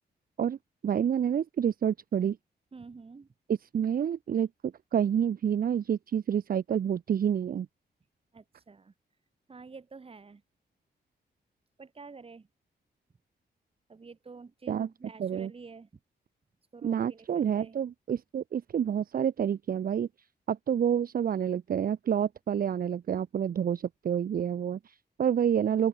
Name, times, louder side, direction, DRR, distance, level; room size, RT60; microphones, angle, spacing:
voice 1, 0.8-2.4 3.7-7.7 14.7-14.9 15.2-15.5 16.8-20.1 20.5-25.9, right 8 dB, 55° right, 0.7 m, -28 dB
voice 2, 2.7-3.3 8.3-8.9 9.5-10.4 11.8-12.5 13.9-16.0 16.7-17.8, right 4 dB, 35° right, 5.9 m, -49 dB
open air
wide cardioid pair, 165°, 17 cm